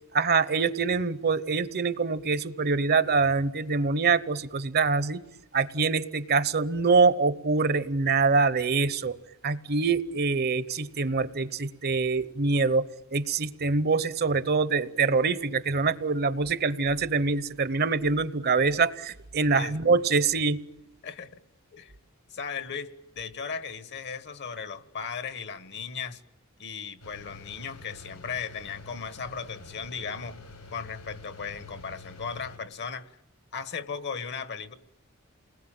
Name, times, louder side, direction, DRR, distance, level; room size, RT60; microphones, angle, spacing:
voice 1, 0.1-5.2 5.5-9.2 9.4-20.6, right 4 dB, 50° right, 0.9 m, -25 dB
voice 2, 22.3-26.2 26.6-30.4 30.7-33.1 33.5-34.7, left 6 dB, 55° left, 1.4 m, -36 dB
sound 1, 27.0-32.6, left 3 dB, 90° left, 5.8 m, -47 dB
29.5 x 20.5 x 9.0 m
head